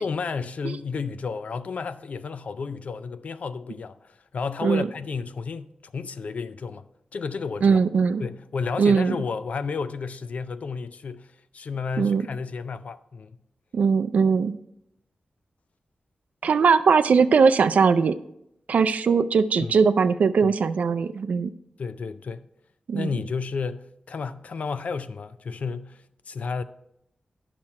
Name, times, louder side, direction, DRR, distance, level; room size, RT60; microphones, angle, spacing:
voice 1, 0.0-6.8 7.1-7.8 8.2-13.4 19.6-19.8 20.4-20.5 21.8-22.5 22.9-26.6, left 5 dB, 70° left, 0.4 m, -32 dB
voice 2, 7.6-8.2 8.8-9.2 12.0-12.3 13.7-14.5 16.4-18.1 18.7-21.5 22.9-23.1, right 5 dB, 85° right, 0.4 m, -20 dB
9.7 x 5.9 x 4.2 m
cardioid pair, 65°, 2 cm